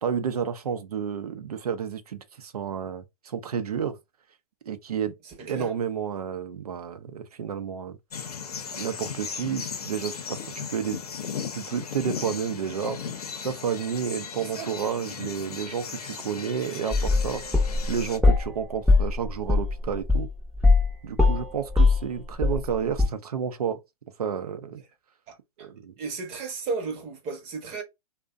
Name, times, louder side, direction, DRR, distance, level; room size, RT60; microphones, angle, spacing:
voice 1, 0.0-4.0 4.7-5.1 5.5-8.0 8.8-11.0 11.5-13.0 13.4-17.4 17.9-20.3 21.0-23.8 24.2-24.8 25.6-25.9, right 7 dB, 85° right, 0.5 m, -31 dB
voice 2, 5.2-5.7 14.4-14.7 25.3-25.7 26.0-27.8, right 4 dB, 30° right, 0.8 m, -34 dB
sound 1, 8.1-18.2, left 6 dB, 85° left, 0.6 m, -37 dB
sound 2, 16.9-18.5 18.9-20.9 21.2-22.7 23.0-23.1, left 3 dB, ahead, 0.5 m, -20 dB
2.5 x 2.1 x 2.4 m
hypercardioid pair, 125°, 19 cm